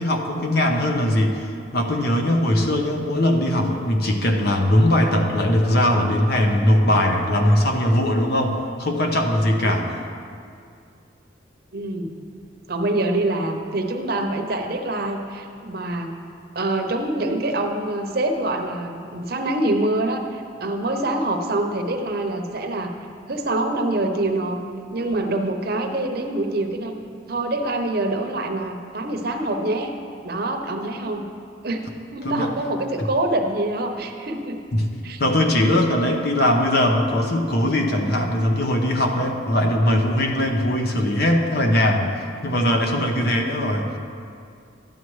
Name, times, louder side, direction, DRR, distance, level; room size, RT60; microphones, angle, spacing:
voice 1, 0.0-1.5 1.7-9.9 32.2-32.5 34.7-34.9 35.2-43.9, left 1 dB, 55° left, 2 dB, 0.8 m, -20 dB
voice 2, 11.7-12.1 12.7-16.1 16.5-22.9 23.3-24.6 24.9-26.9 27.3-29.9 30.2-31.2 31.6-31.8 32.1-34.6 35.0-35.2, right 2 dB, 50° right, 4 dB, 0.8 m, -25 dB
12.5 x 9.0 x 3.2 m, 2.4 s
head